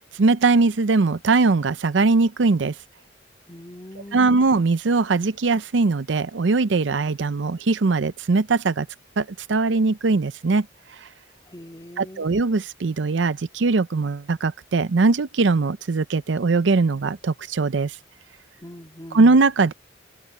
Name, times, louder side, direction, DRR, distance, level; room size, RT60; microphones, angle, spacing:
voice 1, 0.2-2.7 4.1-8.9 9.2-10.7 12.0-17.9 19.1-19.7, right 3 dB, 80° right, 0.6 m, -20 dB
voice 2, 3.5-4.4 11.5-12.3 18.6-19.3, left 1 dB, 20° left, 2.2 m, -41 dB
head